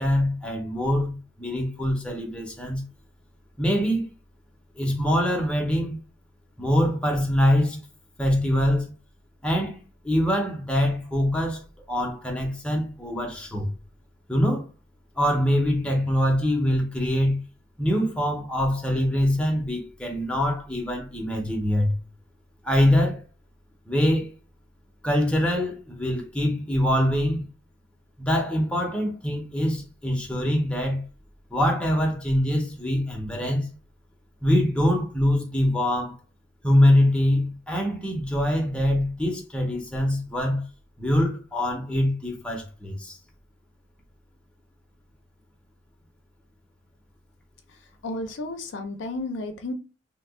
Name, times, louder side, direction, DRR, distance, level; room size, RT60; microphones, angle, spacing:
voice 1, 0.0-2.8 3.6-4.1 4.8-6.0 6.6-7.9 8.2-8.9 9.4-11.6 11.9-13.7 14.3-14.7 15.2-17.4 17.8-21.9 22.6-23.2 23.9-24.3 25.0-27.5 28.2-31.0 31.5-33.7 34.4-36.2 36.6-40.6 41.0-43.2, equal, 5° left, 0.7 m, -24 dB
voice 2, 48.0-49.7, left 2 dB, 70° left, 0.5 m, -32 dB
2.8 x 2.3 x 3.5 m
head